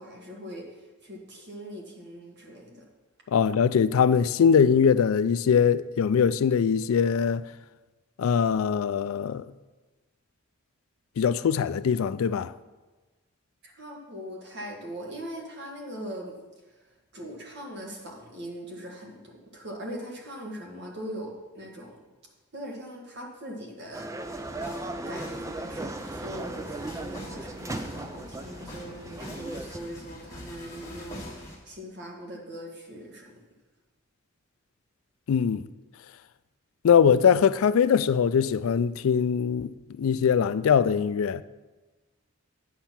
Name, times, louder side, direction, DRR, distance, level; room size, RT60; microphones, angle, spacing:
voice 1, 0.0-2.8 13.6-16.4 17.1-22.0 22.5-24.1 25.0-33.4, equal, 50° right, 1.6 m, -41 dB
voice 2, 3.3-7.4 8.2-9.5 11.2-12.5 35.3-35.6 36.8-41.4, left 7 dB, 75° left, 0.3 m, -22 dB
sound 1, 23.9-29.8, right 2 dB, 15° right, 0.3 m, -37 dB
sound 2, 24.2-31.6, left 1 dB, 15° left, 1.8 m, -44 dB
8.8 x 5.5 x 5.9 m
head